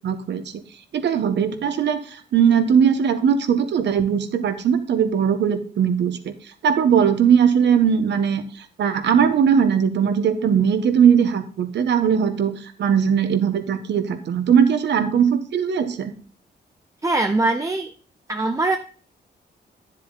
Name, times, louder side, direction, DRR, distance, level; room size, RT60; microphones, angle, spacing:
voice 1, 0.0-0.4 0.9-6.2 6.6-8.4 8.8-16.1, right 7 dB, 75° right, 9 dB, 1.4 m, -19 dB
voice 2, 17.0-17.9 18.3-18.8, right 2 dB, 15° right, 6 dB, 0.7 m, -21 dB
10.5 x 7.3 x 4.0 m, 0.42 s
wide cardioid pair, 145°, 18 cm